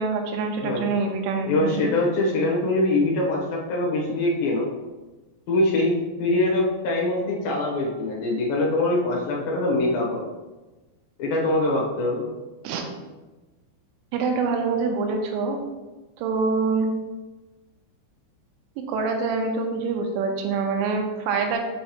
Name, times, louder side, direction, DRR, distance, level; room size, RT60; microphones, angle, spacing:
voice 1, 0.0-1.9 12.6-12.8 14.1-15.6 16.2-16.9 18.9-21.6, right 4 dB, 90° right, 3 dB, 3.2 m, -25 dB
voice 2, 0.6-1.0 1.4-4.7 5.5-10.3 11.2-12.2, left 2 dB, 70° left, -3 dB, 2.3 m, -23 dB
6.6 x 5.3 x 3.0 m, 1.2 s
omnidirectional pair, 5.6 m